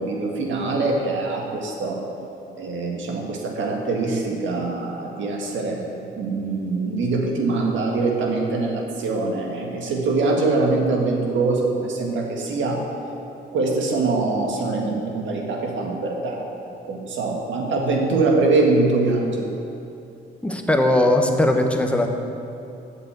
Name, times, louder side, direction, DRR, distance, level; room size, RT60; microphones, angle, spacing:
voice 1, 0.0-2.0 2.6-5.8 6.2-12.9 13.5-19.5, right 3 dB, 75° right, 0 dB, 1.9 m, -23 dB
voice 2, 20.4-22.1, left 1 dB, 5° left, 3 dB, 1.1 m, -19 dB
8.6 x 6.7 x 8.2 m, 2.7 s
cardioid pair, 90°, 20 cm